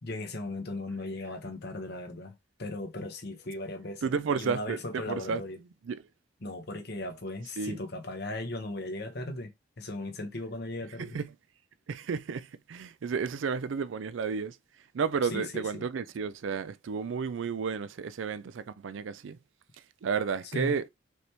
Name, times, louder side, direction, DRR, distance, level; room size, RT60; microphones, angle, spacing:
voice 1, 0.0-4.0 4.3-5.6 6.4-11.2 15.3-15.9 20.5-20.7, left 2 dB, 60° left, 1.1 m, -37 dB
voice 2, 4.0-5.4 5.8-6.1 7.6-7.8 11.0-11.3 11.9-14.6 14.9-19.4 20.0-20.9, right 5 dB, 90° right, 0.4 m, -32 dB
5.1 x 3.1 x 3.3 m
head